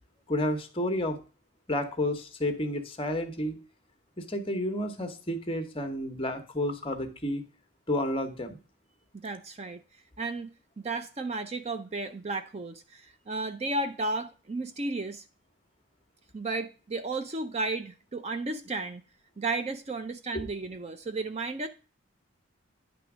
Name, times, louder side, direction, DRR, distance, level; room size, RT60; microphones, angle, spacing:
voice 1, 0.3-1.2 1.7-3.6 4.2-7.4 7.9-8.6 20.3-20.4, left 1 dB, 25° left, 1.0 m, -31 dB
voice 2, 9.1-9.8 10.2-10.5 10.8-15.2 16.3-19.0 19.4-21.7, right 2 dB, 30° right, 0.5 m, -33 dB
10.0 x 3.5 x 6.0 m
head